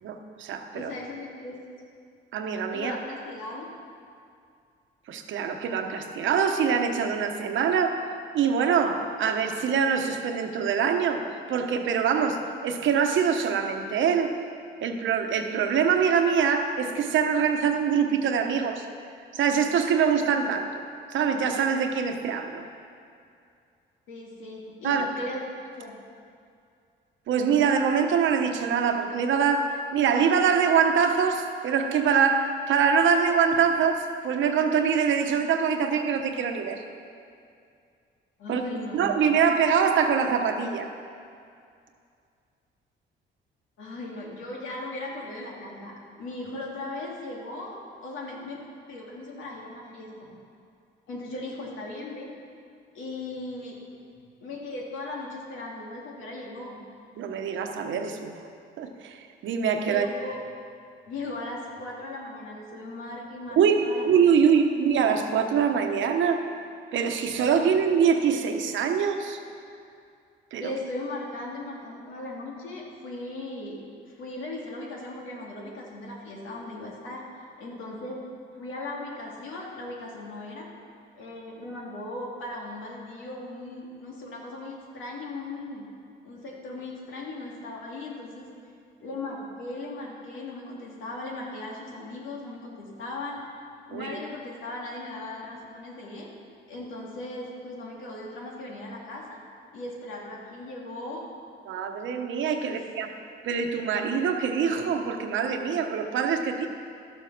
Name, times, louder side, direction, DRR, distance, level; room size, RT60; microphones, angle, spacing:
voice 1, 0.0-0.9 2.3-2.9 5.1-8.0 8.3-14.3 14.8-18.9 19.3-20.7 21.1-22.6 24.8-25.1 27.3-36.8 38.5-38.6 38.9-40.9 57.2-58.3 58.8-60.1 63.6-66.5 66.9-69.4 70.5-70.7 93.9-94.2 101.7-103.1 103.4-106.7, right 6 dB, 75° right, 5 dB, 1.0 m, -24 dB
voice 2, 0.7-1.6 2.7-3.7 24.1-25.4 25.7-25.9 38.4-39.1 43.8-47.8 48.0-48.6 48.9-50.3 51.1-52.3 52.9-53.8 54.4-56.8 59.8-60.4 61.1-64.6 70.6-73.8 74.1-77.2 77.6-78.2 78.5-80.7 81.1-85.8 86.2-88.5 89.0-93.4 93.9-96.3 96.7-99.2 99.7-101.2 102.6-102.8, left 2 dB, 85° left, -2 dB, 2.3 m, -38 dB
12.5 x 7.2 x 6.0 m, 2.4 s
cardioid pair, 90°, 20 cm